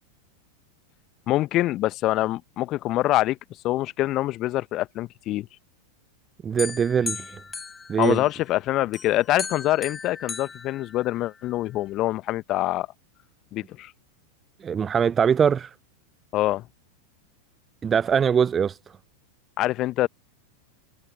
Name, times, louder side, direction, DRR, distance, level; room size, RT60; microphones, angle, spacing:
voice 1, 1.3-3.4 3.6-5.5 8.0-12.9 13.5-13.9 16.3-16.7 19.6-20.1, left 16 dB, 35° left, 1.2 m, -25 dB
voice 2, 6.4-7.4 7.9-8.2 14.6-15.7 17.8-18.8, right 7 dB, 20° right, 0.4 m, -22 dB
sound 1, 6.6-8.5 8.9-11.5, left 5 dB, 15° left, 6.1 m, -37 dB
figure-of-eight pair, 90°, 0 cm